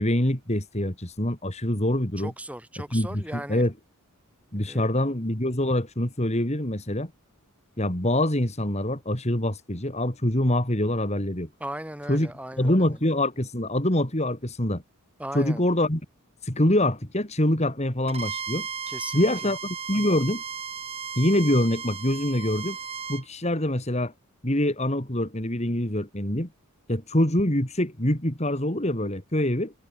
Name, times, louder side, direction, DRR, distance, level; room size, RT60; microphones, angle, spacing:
voice 1, 0.0-2.3 2.9-3.7 4.5-7.1 7.8-11.5 12.1-12.3 12.6-14.8 15.3-16.0 16.4-18.7 19.1-20.4 21.2-22.8 23.1-24.1 24.4-26.5 26.9-29.7, left 1 dB, 30° left, 3.2 m, -25 dB
voice 2, 2.2-3.6 4.5-4.9 11.6-13.0 15.2-15.7 18.9-19.5, right 1 dB, 5° right, 4.0 m, -37 dB
Bowed string instrument, 18.1-23.3, right 6 dB, 25° right, 6.2 m, -35 dB
head